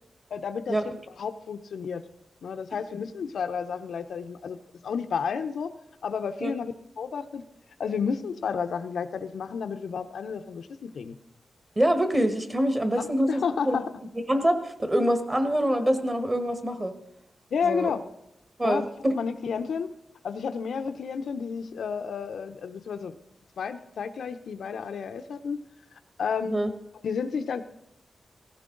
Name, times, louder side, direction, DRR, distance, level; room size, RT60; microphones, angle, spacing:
voice 1, 0.3-2.0 2.4-4.6 4.8-5.7 6.0-7.4 7.8-11.1 13.0-13.9 17.5-18.0 18.6-19.9 20.2-23.2 23.6-25.6 26.2-26.6 27.0-27.6, left 6 dB, 85° left, 8 dB, 0.7 m, -31 dB
voice 2, 11.8-13.8 14.3-16.9 17.6-17.9 18.6-19.1 26.5-26.7, right 1 dB, 20° right, 7 dB, 1.4 m, -25 dB
17.5 x 15.0 x 3.9 m, 0.81 s
wide cardioid pair, 145°, 0 cm